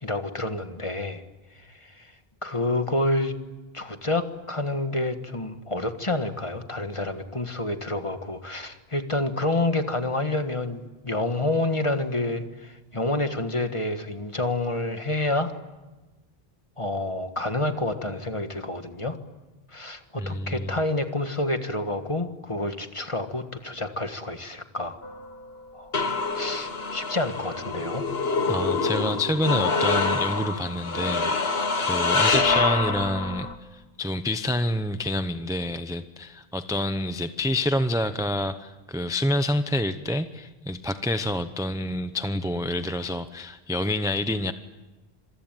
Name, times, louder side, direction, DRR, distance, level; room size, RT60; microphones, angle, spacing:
voice 1, 0.0-1.2 1.6-2.1 2.4-3.3 3.7-15.5 16.8-19.2 19.7-25.0 25.7-25.9 26.3-28.0, left 2 dB, 30° left, 7 dB, 1.7 m, -28 dB
voice 2, 20.2-20.8 28.5-44.5, left 1 dB, 5° right, 9 dB, 0.8 m, -28 dB
sound 1, 25.0-33.6, left 3 dB, 75° left, 1.9 m, -26 dB
26.5 x 23.5 x 9.1 m, 1.2 s
omnidirectional pair, 1.0 m